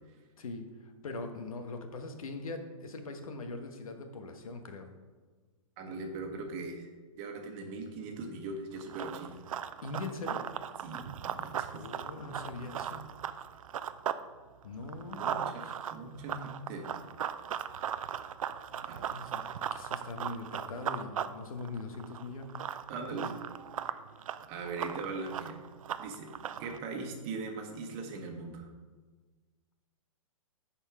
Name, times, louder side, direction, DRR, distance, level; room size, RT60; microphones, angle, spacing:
voice 1, 0.4-4.9 9.8-10.4 11.7-13.0 14.6-15.6 18.7-22.6, left 3 dB, 80° left, 6 dB, 1.3 m, -42 dB
voice 2, 5.8-6.9 7.2-9.4 10.8-11.8 15.1-16.9 18.8-19.0 22.9-23.3 23.8-23.9 24.5-25.6 26.0-26.3 26.6-28.7, right 3 dB, 30° right, 3 dB, 1.3 m, -40 dB
Run, 8.8-14.2 14.6-26.8, right 9 dB, 75° right, 0.5 m, -38 dB
10.0 x 4.4 x 4.8 m, 1.4 s
hypercardioid pair, 145°, 18 cm